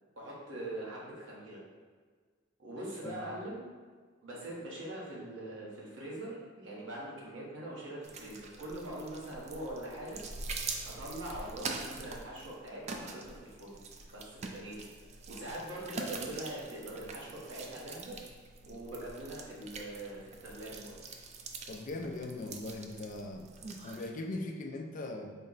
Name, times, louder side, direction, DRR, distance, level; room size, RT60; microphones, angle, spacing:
voice 1, 0.2-1.6 2.6-3.7 4.2-10.2 11.0-13.8 14.1-14.8 15.3-18.2 18.6-21.0, right 1 dB, 75° right, -5 dB, 1.0 m, -42 dB
sound 1, 8.0-24.1, right 4 dB, 35° right, 0.3 m, -44 dB
voice 2, 21.7-23.5 23.8-25.3, left 2 dB, 45° left, 3 dB, 0.4 m, -40 dB
4.2 x 2.1 x 3.7 m, 1.6 s
head